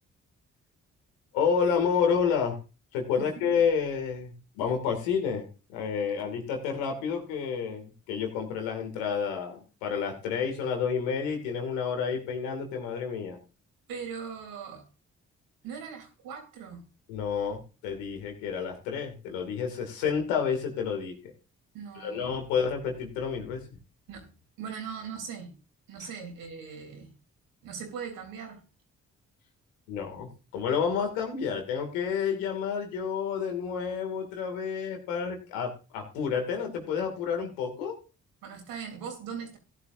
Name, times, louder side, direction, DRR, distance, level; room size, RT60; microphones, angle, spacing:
voice 1, 1.3-2.6 2.9-13.4 17.1-21.3 22.0-23.8 26.0-26.1 29.9-38.0, left 6 dB, 90° left, 4 dB, 2.6 m, -30 dB
voice 2, 3.2-3.5 13.9-14.9 15.6-16.9 21.7-22.4 24.1-25.6 25.9-27.1 27.6-28.6 38.4-39.6, right 6 dB, 80° right, 3 dB, 3.7 m, -40 dB
16.0 x 11.0 x 2.7 m, 0.32 s
hypercardioid pair, 45°, 34 cm